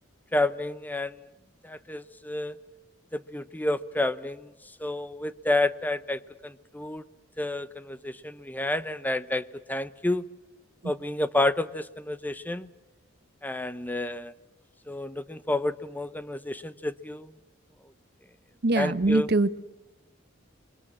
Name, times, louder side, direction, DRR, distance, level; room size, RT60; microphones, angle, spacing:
voice 1, 0.3-1.2 1.6-2.6 3.1-4.5 4.8-7.0 7.4-10.3 10.8-12.7 13.4-14.3 14.9-17.3 18.7-19.3, left 2 dB, 10° left, 14 dB, 0.8 m, -30 dB
voice 2, 18.6-19.6, right 2 dB, 55° right, 12 dB, 1.0 m, -23 dB
27.5 x 23.0 x 7.5 m, 1.0 s
head